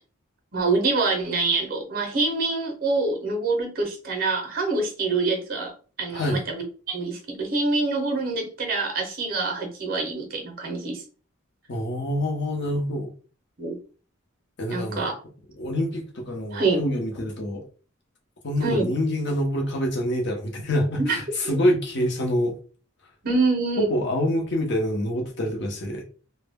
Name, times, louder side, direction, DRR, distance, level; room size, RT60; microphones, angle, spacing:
voice 1, 0.5-5.7 6.0-11.0 13.6-13.8 14.7-15.2 16.5-16.8 18.6-18.9 20.9-21.2 23.2-23.9, right 3 dB, 45° right, 0.6 m, -25 dB
voice 2, 11.7-13.1 14.6-15.1 15.6-17.6 18.4-22.5 23.8-26.0, equal, 55° left, 0.6 m, -26 dB
2.1 x 2.0 x 3.4 m
head